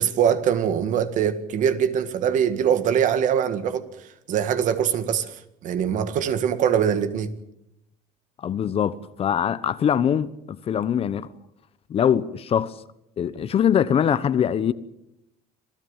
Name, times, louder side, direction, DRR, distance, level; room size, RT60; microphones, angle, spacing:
voice 1, 0.0-3.9 4.3-5.3 5.6-7.3, right 8 dB, 55° right, 1.9 m, -22 dB
voice 2, 8.4-11.3 11.9-12.7 13.2-14.7, left 8 dB, 40° left, 1.0 m, -22 dB
26.5 x 16.5 x 7.4 m
cardioid pair, 125°, 15 cm